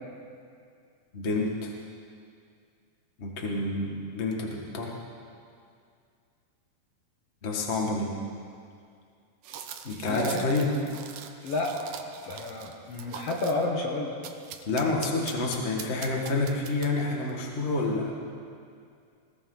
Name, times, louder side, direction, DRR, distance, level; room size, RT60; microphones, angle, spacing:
voice 1, 1.1-1.7 3.2-4.9 7.4-8.1 9.8-10.7 14.6-18.2, left 3 dB, 30° left, -1 dB, 1.5 m, -28 dB
sound 1, 9.4-13.7 14.2-17.2, right 8 dB, 70° right, 1.4 m, -43 dB
voice 2, 10.1-10.4 11.4-11.9 12.2-14.2, left 2 dB, 60° left, 0 dB, 2.0 m, -30 dB
20.0 x 17.5 x 3.9 m, 2.3 s
omnidirectional pair, 3.6 m